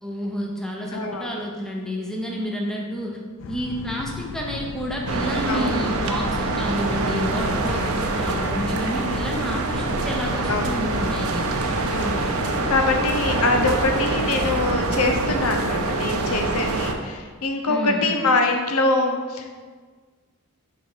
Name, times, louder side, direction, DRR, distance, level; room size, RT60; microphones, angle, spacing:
voice 1, 0.0-3.2 3.5-11.5 17.7-18.1, equal, ahead, -1 dB, 0.7 m, -29 dB
voice 2, 0.9-1.3 5.5-5.8 7.7-7.9 10.5-11.2 11.8-19.5, left 3 dB, 70° left, 4 dB, 0.8 m, -24 dB
Boat Water vehicle, 3.4-12.8, left 5 dB, 55° left, 0.3 m, -36 dB
sound 1, 5.1-16.9, right 3 dB, 70° right, 0.7 m, -25 dB
5.6 x 4.3 x 5.6 m, 1.5 s
head